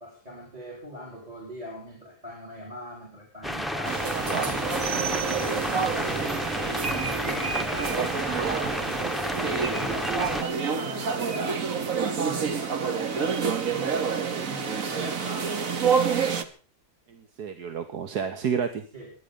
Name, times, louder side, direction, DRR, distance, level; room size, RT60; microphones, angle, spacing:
voice 1, 0.0-4.0 5.3-6.6 6.9-10.4 10.7-11.6 12.2-15.9 18.9-19.1, equal, 25° right, 0 dB, 4.9 m, -41 dB
sound 1, 3.4-10.4, equal, ahead, 0.7 m, -31 dB
sound 2, 3.8-16.4, right 6 dB, 60° right, 1.8 m, -28 dB
voice 2, 17.1-18.8, right 6 dB, 80° right, 8 dB, 1.8 m, -30 dB
25.0 x 10.5 x 5.3 m, 0.40 s
omnidirectional pair, 1.7 m